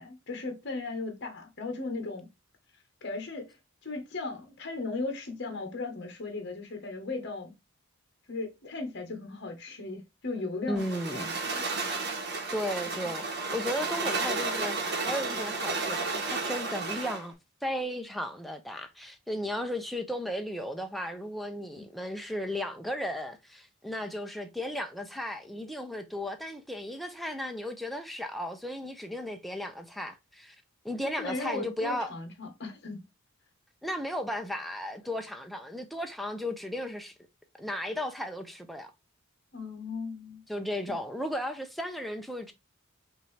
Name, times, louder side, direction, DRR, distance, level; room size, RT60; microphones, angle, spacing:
voice 1, 0.0-2.3 3.0-3.6 3.8-7.5 8.3-11.6 12.8-13.1 21.8-21.9 31.0-33.0 39.5-40.4 40.9-41.0, left 3 dB, 55° left, 1.1 m, -37 dB
voice 2, 10.7-11.3 12.5-13.2 13.5-17.3 17.6-30.6 30.8-32.1 33.8-37.1 37.6-38.9 40.5-42.5, equal, ahead, 0.5 m, -35 dB
sound 1, 10.8-17.3, right 3 dB, 50° right, 1.2 m, -32 dB
5.3 x 2.7 x 3.2 m
head